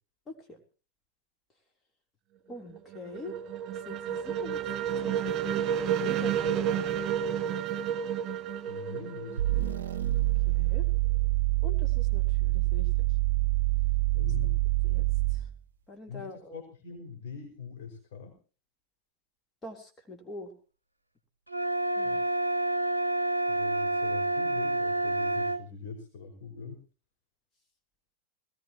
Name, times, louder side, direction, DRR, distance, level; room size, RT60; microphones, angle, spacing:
voice 1, 0.3-0.6 2.5-3.4 3.7-4.6 4.9-5.7 6.0-6.9 10.5-10.9 11.6-12.9 14.8-15.0 15.3-15.5 15.9-16.6 19.6-20.5 22.0-22.2, left 1 dB, 20° left, 3 dB, 3.4 m, -44 dB
sound 1, 2.6-10.3, right 9 dB, 30° right, 3.6 m, -31 dB
voice 2, 8.7-9.8 14.1-14.6 16.1-18.4 22.0-22.3 23.5-26.8, left 5 dB, 50° left, 2 dB, 5.3 m, -43 dB
sound 2, 9.4-15.6, right 19 dB, 60° right, 1.0 m, -26 dB
sound 3, 21.5-25.6, right 1 dB, 85° right, 0.8 m, -28 dB
20.5 x 18.5 x 3.0 m, 0.36 s
figure-of-eight pair, 90°, 0 cm